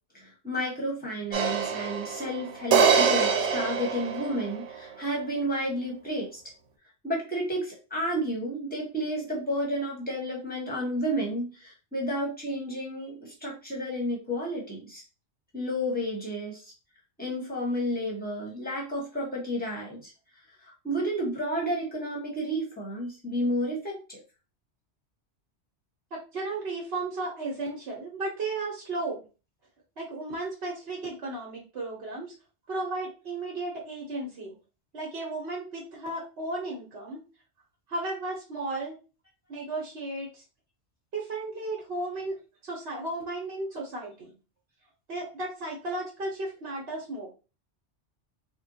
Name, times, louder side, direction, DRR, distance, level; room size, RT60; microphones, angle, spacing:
voice 1, 0.1-6.4 7.0-15.0 15.5-16.6 17.2-20.1 20.6-24.2, equal, 10° left, -2 dB, 1.1 m, -31 dB
sound 1, 1.3-4.7, right 6 dB, 85° right, 0.9 m, -24 dB
voice 2, 26.3-29.2 30.0-32.3 32.7-34.5 34.9-37.2 37.9-39.0 39.5-40.4 41.1-44.3 45.1-47.3, right 2 dB, 65° right, -2 dB, 1.1 m, -34 dB
3.6 x 2.2 x 2.7 m, 0.32 s
omnidirectional pair, 1.2 m